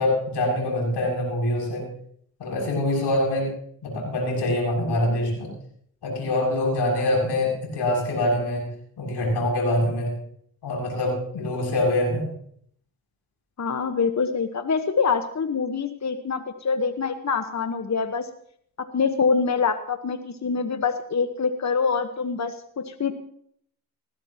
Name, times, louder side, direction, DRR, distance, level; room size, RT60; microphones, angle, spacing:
voice 1, 0.0-1.9 2.4-3.5 3.8-5.5 6.0-8.7 9.0-10.1 10.6-12.3, left 1 dB, 75° left, -1 dB, 7.4 m, -24 dB
voice 2, 13.6-18.3 18.8-23.1, left 5 dB, 40° left, 8 dB, 1.3 m, -25 dB
20.0 x 15.0 x 3.0 m, 0.64 s
supercardioid pair, 45°, 41 cm